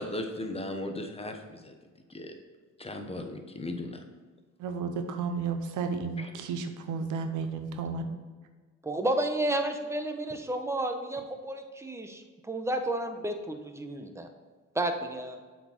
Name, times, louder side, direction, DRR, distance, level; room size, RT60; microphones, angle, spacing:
voice 1, 0.0-1.7 2.1-2.3 2.8-4.0 6.2-6.3, left 1 dB, 20° left, 5 dB, 0.9 m, -37 dB
voice 2, 4.6-8.1, right 5 dB, 90° right, 7 dB, 0.8 m, -32 dB
voice 3, 8.8-14.3 14.7-15.4, right 1 dB, 10° right, 5 dB, 0.8 m, -31 dB
7.7 x 4.5 x 4.4 m, 1.4 s
cardioid pair, 90°, 30 cm